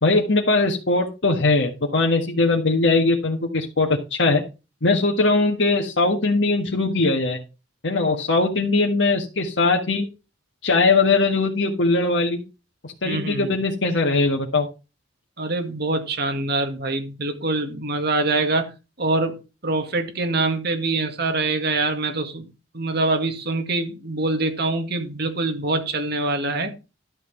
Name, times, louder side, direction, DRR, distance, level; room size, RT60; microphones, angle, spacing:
voice 1, 0.0-4.4 4.8-7.4 7.8-10.1 10.6-12.4 12.8-14.7, left 3 dB, 70° left, 1 dB, 1.6 m, -20 dB
voice 2, 13.0-13.5 15.4-18.7 19.0-22.5 22.7-26.7, right 2 dB, 60° right, 6 dB, 2.0 m, -24 dB
12.0 x 5.9 x 4.4 m, 0.29 s
head